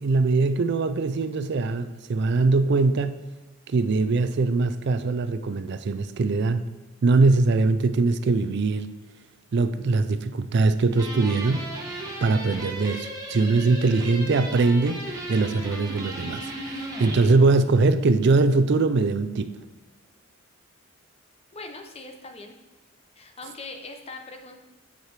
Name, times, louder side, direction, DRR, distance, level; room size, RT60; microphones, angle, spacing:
voice 1, 0.0-3.2 3.7-6.6 7.0-8.9 9.5-11.7 12.2-16.5 17.0-19.6, right 3 dB, 55° right, 11 dB, 0.4 m, -22 dB
sound 1, 10.9-17.3, right 1 dB, 20° right, 1.2 m, -36 dB
voice 2, 21.5-22.5 23.2-24.6, left 3 dB, 30° left, 4 dB, 0.8 m, -41 dB
9.3 x 4.9 x 4.7 m, 1.1 s
head